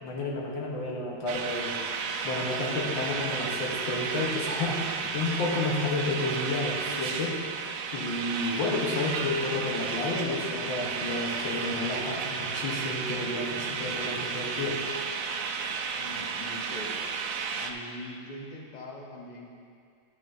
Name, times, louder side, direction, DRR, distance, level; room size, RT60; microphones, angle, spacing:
voice 1, 0.0-1.8 2.2-7.4 7.9-14.8, left 2 dB, 70° left, -2 dB, 1.9 m, -31 dB
sound 1, 1.3-17.7, right 5 dB, 85° right, 1.4 m, -33 dB
voice 2, 16.0-17.1 17.6-19.5, left 1 dB, 45° left, -1 dB, 0.5 m, -42 dB
12.0 x 8.9 x 2.7 m, 2.3 s
omnidirectional pair, 2.3 m